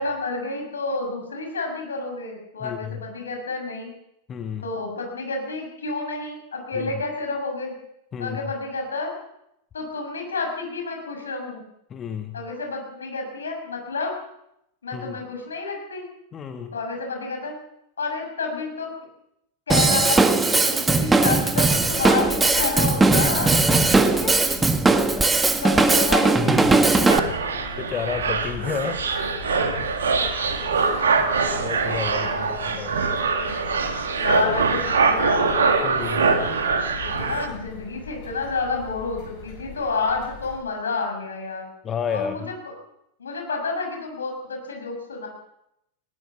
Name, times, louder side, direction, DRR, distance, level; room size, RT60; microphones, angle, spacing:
voice 1, 0.0-3.9 4.6-7.7 8.2-9.1 9.7-11.6 12.3-14.1 14.8-16.1 16.7-17.5 18.0-18.9 19.7-23.6 25.6-27.2 32.2-33.7 34.2-35.5 37.0-41.7 42.1-42.5 43.2-45.3, left 3 dB, 70° left, 3 dB, 6.8 m, -29 dB
voice 2, 2.6-3.0 4.3-4.6 6.7-6.9 8.1-8.5 11.9-12.4 14.9-15.2 16.3-16.7 23.2-23.3 23.7-24.6 25.2-25.3 27.8-29.2 30.8-32.9 35.8-36.3 41.8-42.5, left 7 dB, 25° left, 7 dB, 1.6 m, -32 dB
Drum kit / Drum, 19.7-27.2, right 3 dB, 10° right, 1.6 m, -19 dB
sound 1, 21.6-40.6, left 5 dB, 45° left, 6.2 m, -41 dB
sound 2, 27.1-37.5, right 4 dB, 65° right, 2.6 m, -23 dB
20.5 x 18.5 x 7.2 m, 0.80 s
figure-of-eight pair, 90°, 0 cm